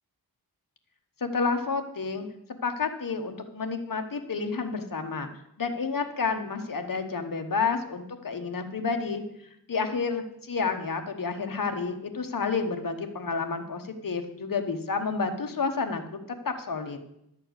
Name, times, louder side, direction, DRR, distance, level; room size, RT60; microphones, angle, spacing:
voice 1, 1.2-2.3 2.6-5.3 5.6-9.2 9.7-16.2 16.4-17.0, left 4 dB, 55° left, 6 dB, 1.2 m, -30 dB
11.0 x 4.5 x 8.0 m, 0.80 s
wide cardioid pair, 70°, 39 cm